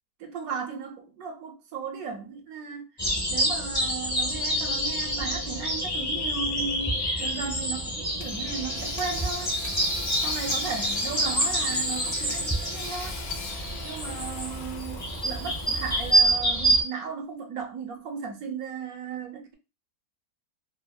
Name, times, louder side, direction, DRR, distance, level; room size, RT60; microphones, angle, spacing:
voice 1, 0.2-2.9 3.3-9.6 10.2-13.3 13.8-19.5, right 5 dB, 80° right, 1.1 m, -36 dB
sound 1, 3.0-16.8, right 1 dB, 20° left, 0.7 m, -27 dB
Hammer / Sawing, 8.2-16.4, left 5 dB, 90° left, 1.1 m, -41 dB
3.5 x 2.0 x 2.3 m
omnidirectional pair, 1.5 m